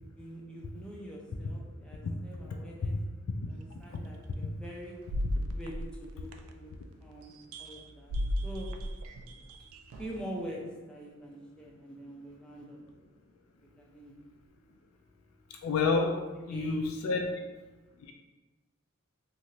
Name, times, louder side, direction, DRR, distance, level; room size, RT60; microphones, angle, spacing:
voice 1, 0.2-3.0 3.5-4.9 5.5-6.7 7.0-7.3 7.6-8.1 8.4-8.7 10.0-10.6 10.9-12.8 13.8-14.1 16.3-16.8 17.2-17.3, right 1 dB, 5° left, -3 dB, 0.4 m, -44 dB
sound 1, 3.9-4.1 5.1-6.7 7.5-7.8 8.1-10.3, equal, 85° right, 0.3 m, -35 dB
voice 2, 15.6-16.2 16.5-17.3 18.0-18.1, left 4 dB, 85° left, 2 dB, 0.3 m, -29 dB
3.1 x 2.4 x 2.7 m, 1.2 s
head